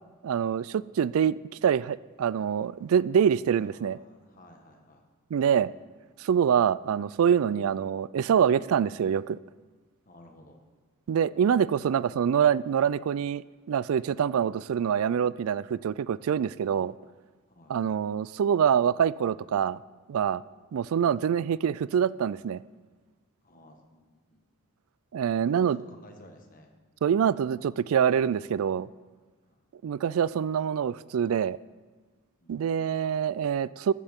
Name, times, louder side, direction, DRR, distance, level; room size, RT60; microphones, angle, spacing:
voice 1, 0.2-4.0 5.3-5.7 6.2-9.4 11.1-13.4 13.7-16.9 17.7-19.8 20.1-20.4 20.7-22.6 25.1-25.8 27.0-28.9 29.8-31.6 32.5-33.9, right 8 dB, 75° right, 0.3 m, -25 dB
voice 2, 3.6-5.0 10.0-10.6 17.5-17.7 23.4-24.4 25.4-26.7 29.5-29.6 32.4-32.7, left 1 dB, 40° left, 1.4 m, -54 dB
15.0 x 13.0 x 3.6 m
head